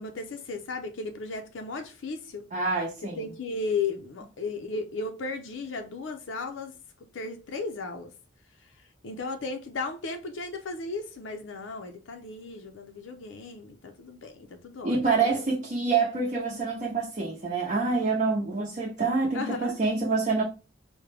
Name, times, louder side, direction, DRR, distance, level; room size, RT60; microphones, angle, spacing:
voice 1, 0.0-2.5 3.0-6.7 7.1-8.1 9.0-15.5 19.3-19.8, left 3 dB, 80° left, 0.5 m, -35 dB
voice 2, 2.5-3.2 14.8-20.4, right 4 dB, 40° right, 0.7 m, -26 dB
4.8 x 2.1 x 3.3 m
head